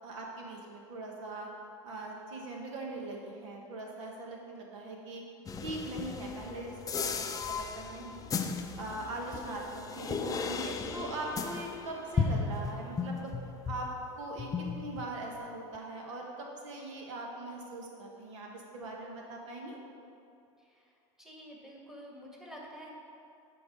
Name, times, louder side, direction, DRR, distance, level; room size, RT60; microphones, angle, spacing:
voice 1, 0.0-1.5 1.8-5.2 5.6-8.3 8.8-13.3 13.7-13.9 14.2-19.8, right 2 dB, 75° right, 0 dB, 1.4 m, -41 dB
sound 1, 5.5-14.1 14.4-15.5, left 5 dB, 20° left, 0.5 m, -36 dB
voice 2, 21.2-22.9, equal, 5° right, -3 dB, 1.7 m, -48 dB
9.8 x 4.6 x 5.3 m, 2.5 s
hypercardioid pair, 95°, 16 cm